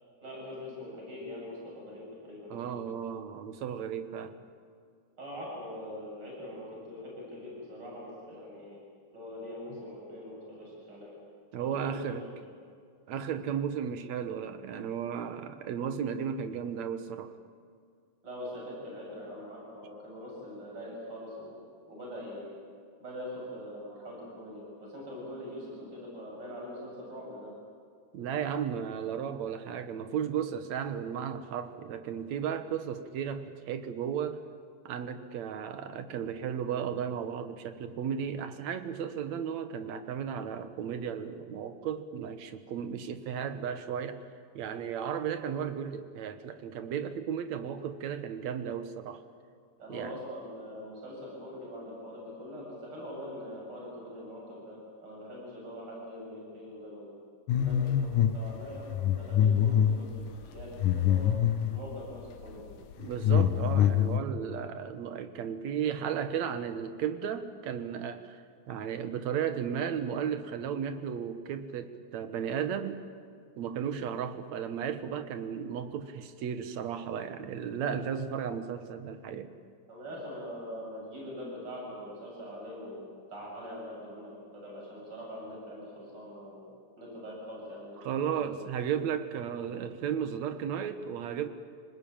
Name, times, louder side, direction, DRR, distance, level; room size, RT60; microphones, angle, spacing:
voice 1, 0.2-2.9 5.2-8.8 9.1-11.1 11.6-12.0 18.2-21.5 21.9-22.6 23.0-27.5 49.8-57.2 57.5-60.2 60.5-61.4 61.7-62.6 79.9-86.7 87.0-88.5, equal, 30° right, -3 dB, 8.2 m, -43 dB
voice 2, 2.5-4.4 11.5-12.3 13.1-17.3 28.1-34.4 34.9-44.2 44.5-49.2 49.9-50.2 63.0-73.0 73.6-79.5 88.0-91.5, right 8 dB, 65° right, 10 dB, 2.3 m, -34 dB
sound 1, 57.5-58.4 58.7-61.8 62.4-62.6 62.9-64.2, left 9 dB, 75° left, 2.5 m, -25 dB
26.0 x 19.5 x 8.9 m, 2.2 s
omnidirectional pair, 3.7 m